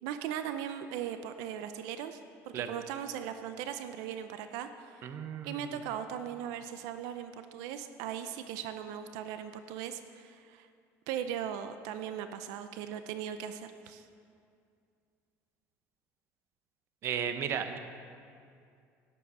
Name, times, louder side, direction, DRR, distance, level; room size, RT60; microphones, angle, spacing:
voice 1, 0.0-2.2 2.4-4.9 5.4-10.7 11.1-14.1, right 9 dB, 80° right, 9 dB, 0.6 m, -38 dB
voice 2, 5.0-5.7 17.0-17.8, right 8 dB, 45° right, 9 dB, 0.8 m, -34 dB
12.5 x 9.9 x 6.2 m, 2.3 s
cardioid pair, 150°, 6 cm